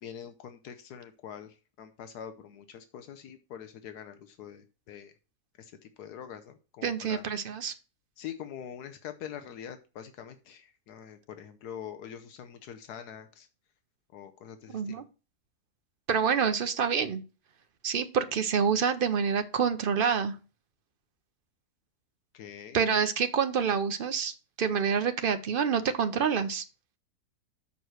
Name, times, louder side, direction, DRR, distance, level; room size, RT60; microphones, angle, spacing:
voice 1, 0.0-5.1 5.6-7.2 8.2-13.5 14.1-15.0 22.3-22.8, left 9 dB, 80° left, 8 dB, 1.3 m, -44 dB
voice 2, 6.8-7.7 14.7-15.0 16.1-17.2 17.8-20.3 22.7-26.6, right 6 dB, 50° right, 9 dB, 0.6 m, -27 dB
6.9 x 4.7 x 6.3 m, 0.33 s
omnidirectional pair, 1.7 m